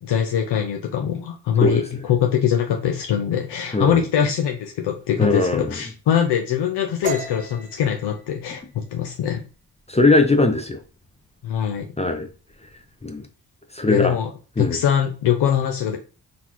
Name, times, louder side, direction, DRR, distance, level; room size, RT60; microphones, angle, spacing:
voice 1, 0.0-9.4 11.4-11.9 13.9-14.3 14.6-16.0, left 9 dB, 75° left, 3 dB, 0.6 m, -22 dB
voice 2, 5.2-5.8 9.9-10.8 12.0-12.3 13.0-13.2 13.7-14.2 14.6-14.8, left 2 dB, 15° left, 6 dB, 0.6 m, -19 dB
sound 1, 7.0-10.5 10.8-11.1 11.5-12.0 12.3-13.1, right 4 dB, 20° right, 1.1 m, -36 dB
3.9 x 2.4 x 2.9 m, 0.36 s
supercardioid pair, 50°, 41 cm